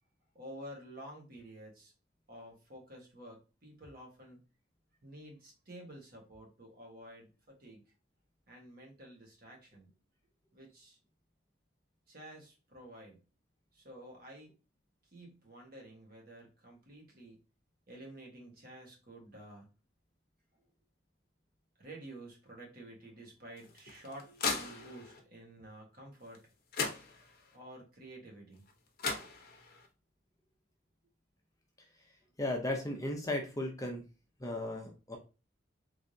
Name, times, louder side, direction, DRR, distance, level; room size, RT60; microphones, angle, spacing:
voice 1, 0.3-1.9 2.3-4.4 5.0-7.9 8.5-9.9 10.5-11.0 12.1-13.2 13.7-14.5 15.0-17.4 17.9-19.7 21.8-26.5 27.5-28.6, right 1 dB, 50° right, 0 dB, 1.4 m, -51 dB
sound 1, 23.6-25.2 26.3-26.4 26.7-27.6 28.7-28.8 29.0-29.9, left 4 dB, 50° left, 0.7 m, -37 dB
voice 2, 32.4-34.0 34.4-35.2, left 1 dB, 15° left, 2 dB, 0.6 m, -35 dB
3.4 x 3.2 x 2.6 m, 0.31 s
head